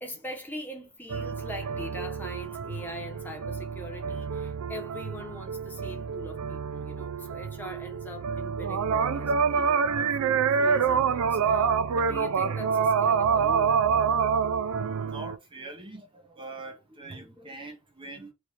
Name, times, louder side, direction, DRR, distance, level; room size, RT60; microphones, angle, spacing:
voice 1, 0.0-13.7 17.1-17.5, equal, 10° left, 0.9 m, -42 dB
sound 1, 1.1-15.4, right 6 dB, 90° right, 0.4 m, -27 dB
voice 2, 14.8-18.3, right 2 dB, 25° right, 0.7 m, -43 dB
3.2 x 2.4 x 4.1 m
head